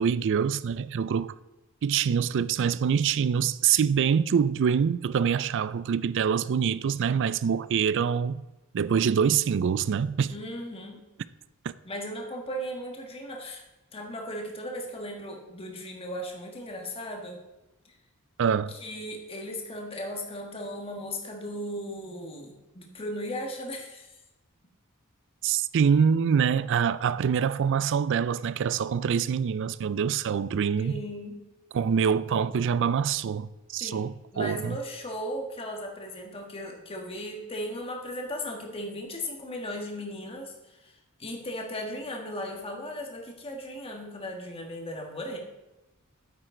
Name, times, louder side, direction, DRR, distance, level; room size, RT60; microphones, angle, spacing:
voice 1, 0.0-1.3 1.8-8.4 8.7-10.3 18.4-18.7 25.4-31.0 31.7-34.8, right 7 dB, 55° right, 0.3 m, -25 dB
voice 2, 10.3-11.0 11.8-13.6 13.9-17.4 17.8-18.0 18.7-24.1 30.8-31.4 33.8-34.0 34.3-45.4, equal, 25° left, 1.5 m, -37 dB
9.3 x 7.7 x 3.8 m
head